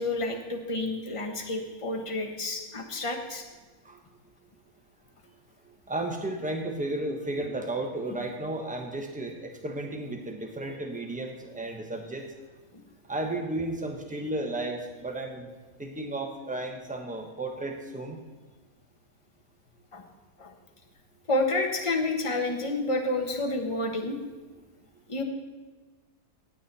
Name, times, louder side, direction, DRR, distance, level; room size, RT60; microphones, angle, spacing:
voice 1, 0.0-3.4 19.9-20.0 20.4-20.5 21.3-24.2 25.1-25.2, left 2 dB, 20° left, 3 dB, 1.2 m, -29 dB
voice 2, 5.9-12.2 13.1-15.5 15.8-18.2, right 2 dB, 5° right, 3 dB, 1.1 m, -33 dB
16.5 x 8.5 x 4.3 m, 1.3 s
omnidirectional pair, 1.7 m